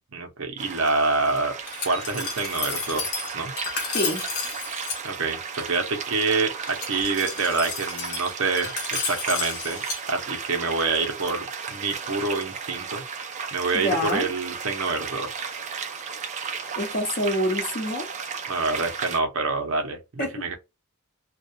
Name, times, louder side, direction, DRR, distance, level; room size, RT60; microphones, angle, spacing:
voice 1, 0.1-1.6 1.8-3.1 3.3-3.5 5.0-8.7 9.0-9.8 10.1-13.0 13.5-15.5 18.5-20.6, right 3 dB, 65° right, 0.7 m, -26 dB
sound 1, 0.6-19.2, right 6 dB, 35° right, 0.4 m, -35 dB
Glass, 1.7-5.0 6.7-10.0, left 4 dB, 90° left, 0.9 m, -32 dB
voice 2, 3.9-4.3 13.8-14.3 16.8-18.1 20.2-20.6, left 1 dB, 40° left, 0.8 m, -26 dB
2.3 x 2.2 x 2.7 m
head